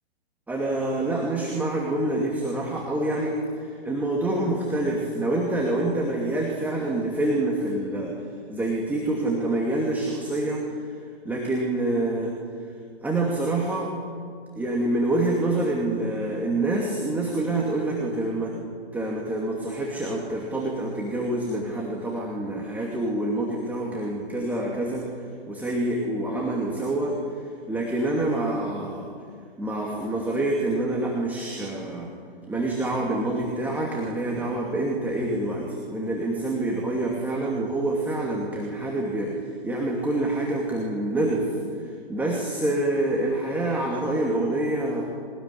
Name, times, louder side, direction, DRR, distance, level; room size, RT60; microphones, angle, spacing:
voice 1, 0.5-8.1 8.5-10.6 11.2-12.3 13.0-13.9 14.6-18.5 18.9-25.1 25.5-27.1 27.7-29.1 29.6-32.1 32.5-41.5 41.8-45.0, right 2 dB, 5° right, -2 dB, 2.5 m, -26 dB
22.0 x 19.5 x 10.0 m, 2.1 s
hypercardioid pair, 140°, 33 cm